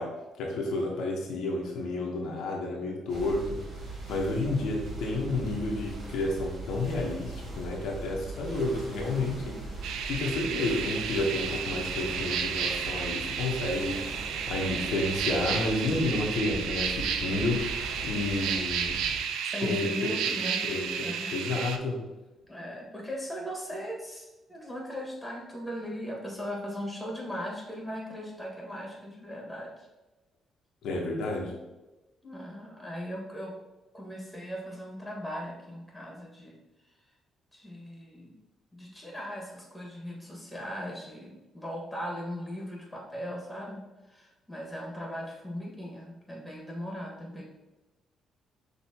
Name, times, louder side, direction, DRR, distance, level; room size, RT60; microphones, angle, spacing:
voice 1, 0.0-3.6 4.1-9.6 10.1-14.0 14.5-17.8 18.0-19.2 19.6-20.1 20.7-22.0 30.8-31.5, left 2 dB, 80° left, -2 dB, 0.9 m, -31 dB
sound 1, 3.1-19.2, right 2 dB, 55° right, 1.2 m, -40 dB
sound 2, 9.8-21.8, right 7 dB, 90° right, 0.3 m, -32 dB
voice 2, 19.4-20.6 21.0-21.3 22.5-29.9 32.2-33.6 33.9-36.6 37.5-38.4 38.7-47.4, equal, 5° left, -2 dB, 1.5 m, -38 dB
6.0 x 2.9 x 2.8 m, 1.1 s
cardioid pair, 90°, 0 cm